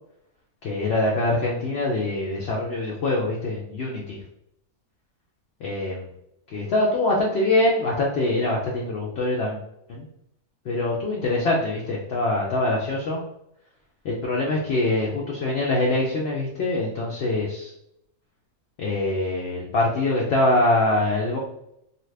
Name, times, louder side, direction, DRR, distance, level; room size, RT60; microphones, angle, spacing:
voice 1, 0.6-4.2 5.6-6.1 6.5-9.6 9.9-10.1 10.6-13.2 14.0-17.7 18.8-21.4, left 2 dB, 65° left, -2 dB, 0.6 m, -24 dB
2.8 x 2.3 x 3.2 m, 0.78 s
omnidirectional pair, 1.6 m